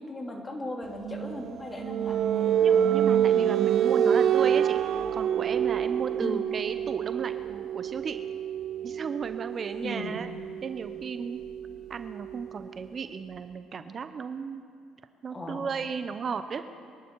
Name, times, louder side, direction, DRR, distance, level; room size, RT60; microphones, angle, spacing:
voice 1, 0.0-2.5 3.8-4.2 6.2-6.5 9.8-10.2 15.3-15.6, left 1 dB, 25° left, 1 dB, 2.9 m, -37 dB
sound 1, 1.0-12.5, right 9 dB, 60° right, 0.4 m, -27 dB
voice 2, 2.6-4.8 5.1-8.2 8.8-10.3 10.6-11.4 11.9-14.6 15.2-16.6, right 5 dB, 45° right, 10 dB, 0.8 m, -35 dB
24.0 x 12.0 x 4.7 m, 2.3 s
supercardioid pair, 75°, 0 cm